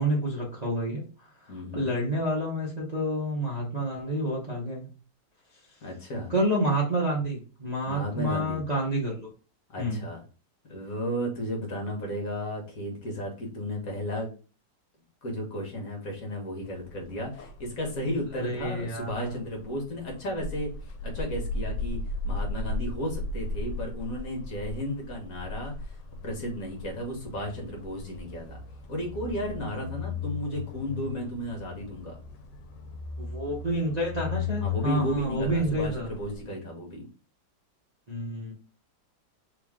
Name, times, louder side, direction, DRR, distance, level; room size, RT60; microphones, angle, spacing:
voice 1, 0.0-4.9 6.3-9.3 9.8-10.1 18.3-19.4 33.2-36.1 38.1-38.5, right 1 dB, 30° right, -5 dB, 0.8 m, -29 dB
voice 2, 1.5-1.9 5.8-6.3 7.9-8.6 9.7-10.2 10.7-14.3 15.2-22.0 22.2-26.0 26.2-28.6 28.9-32.2 34.6-37.1, equal, 50° left, 1 dB, 1.5 m, -34 dB
sound 1, 16.6-36.4, left 3 dB, 75° left, 1.3 m, -37 dB
3.6 x 3.0 x 3.5 m, 0.36 s
omnidirectional pair, 2.0 m